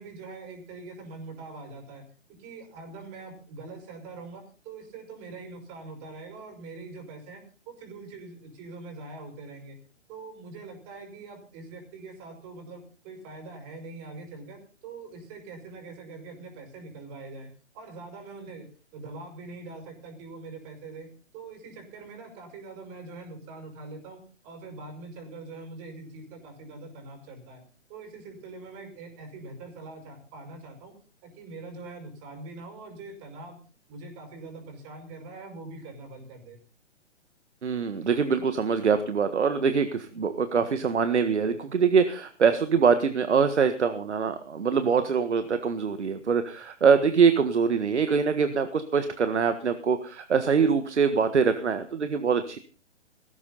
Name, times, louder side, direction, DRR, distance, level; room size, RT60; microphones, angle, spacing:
voice 1, 0.0-2.0 2.4-9.8 10.1-21.1 21.3-27.6 27.9-30.9 31.2-33.6 33.9-36.6, right 3 dB, 30° right, 6 dB, 5.9 m, -43 dB
voice 2, 37.6-52.6, right 6 dB, 70° right, 10 dB, 1.7 m, -24 dB
18.0 x 15.5 x 4.1 m, 0.38 s
figure-of-eight pair, 130°, 36 cm